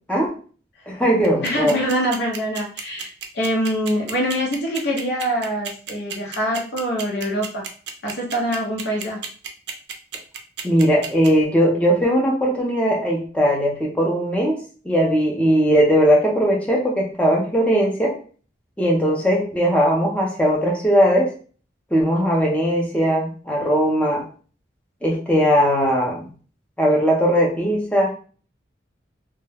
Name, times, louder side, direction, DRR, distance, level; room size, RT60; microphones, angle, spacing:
voice 1, 0.9-1.8 10.6-18.2 18.8-21.3 21.9-24.2 25.0-26.3 26.8-28.1, equal, 5° left, -2 dB, 0.5 m, -19 dB
sound 1, 1.2-11.3, right 8 dB, 65° right, 0.4 m, -31 dB
voice 2, 1.4-3.1 3.3-7.6 8.0-9.2, equal, 65° left, -1 dB, 0.7 m, -24 dB
2.2 x 2.0 x 3.3 m, 0.40 s
head